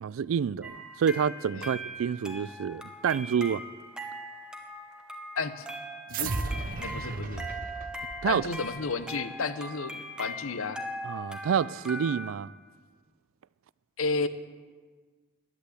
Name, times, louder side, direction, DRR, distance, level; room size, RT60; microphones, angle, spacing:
voice 1, 0.0-3.6 8.2-8.4 11.0-12.5, right 7 dB, 75° right, 0.3 m, -28 dB
sound 1, 0.6-12.3, equal, 5° right, 1.1 m, -40 dB
voice 2, 5.4-5.7 6.1-6.3 6.8-7.5 8.3-10.8 14.0-14.3, left 4 dB, 80° left, 0.8 m, -32 dB
sound 2, 6.1-8.8, right 3 dB, 45° right, 0.7 m, -35 dB
11.0 x 10.5 x 8.3 m
head